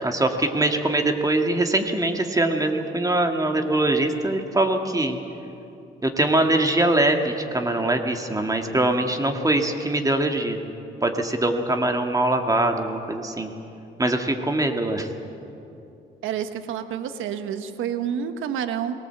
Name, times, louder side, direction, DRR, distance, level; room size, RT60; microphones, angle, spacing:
voice 1, 0.0-5.2 6.0-10.6 11.0-13.5 14.0-15.1, right 2 dB, 15° right, 4 dB, 1.8 m, -22 dB
voice 2, 16.2-18.9, right 8 dB, 85° right, 9 dB, 1.2 m, -29 dB
19.0 x 18.5 x 8.0 m, 2.8 s
cardioid pair, 90°, 20 cm